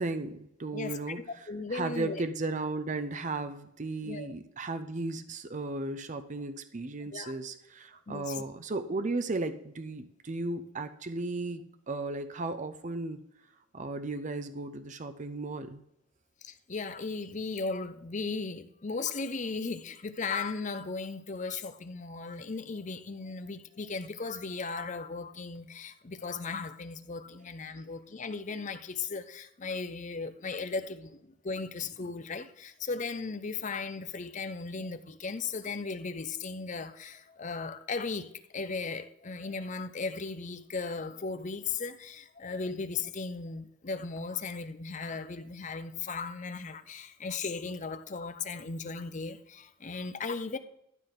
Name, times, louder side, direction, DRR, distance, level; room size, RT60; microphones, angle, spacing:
voice 1, 0.0-1.2 1.7-13.2 13.7-15.8, right 2 dB, 35° right, 0.6 m, -35 dB
voice 2, 0.7-2.2 4.0-4.3 7.1-7.3 8.1-8.4 16.4-50.6, left 4 dB, 35° left, 0.6 m, -36 dB
12.0 x 4.0 x 6.5 m
head